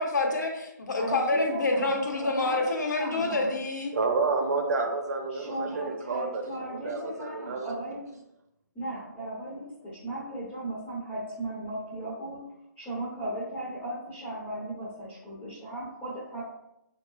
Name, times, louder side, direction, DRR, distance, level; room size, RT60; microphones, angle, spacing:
voice 1, 0.0-3.9, left 2 dB, 65° left, 2 dB, 1.0 m, -27 dB
voice 2, 1.0-3.6 5.3-8.2 8.7-12.5 12.8-16.4, right 1 dB, 10° left, -5 dB, 0.9 m, -36 dB
voice 3, 3.9-7.8, right 4 dB, 55° right, 3 dB, 0.9 m, -30 dB
6.8 x 3.0 x 2.3 m, 0.86 s
figure-of-eight pair, 140°, 10 cm